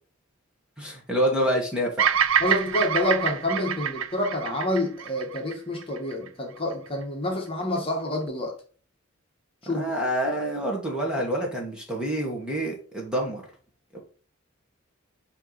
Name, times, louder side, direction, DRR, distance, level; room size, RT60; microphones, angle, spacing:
voice 1, 0.8-2.1 9.7-13.4 13.9-14.0, right 1 dB, 5° right, -2 dB, 1.3 m, -27 dB
Bird vocalization bird call bird song, 2.0-6.3, right 8 dB, 75° right, 0.5 m, -26 dB
voice 2, 2.4-8.5 9.6-9.8, left 1 dB, 25° left, 0 dB, 1.4 m, -28 dB
8.0 x 3.0 x 4.0 m, 0.40 s
head